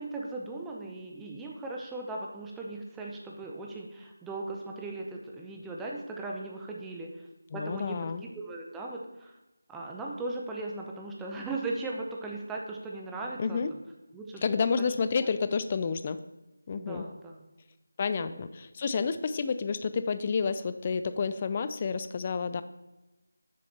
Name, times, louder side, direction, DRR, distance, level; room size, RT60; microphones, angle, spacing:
voice 1, 0.0-7.3 7.5-9.3 9.7-13.8 14.1-14.7 16.7-17.5 18.2-18.5, right 2 dB, 5° right, -1 dB, 0.7 m, -38 dB
voice 2, 7.5-8.2 13.4-13.7 14.4-16.2 16.7-17.0 18.0-22.6, left 5 dB, 25° left, 12 dB, 0.4 m, -30 dB
6.8 x 6.3 x 4.3 m, 1.1 s
figure-of-eight pair, 165°, 0 cm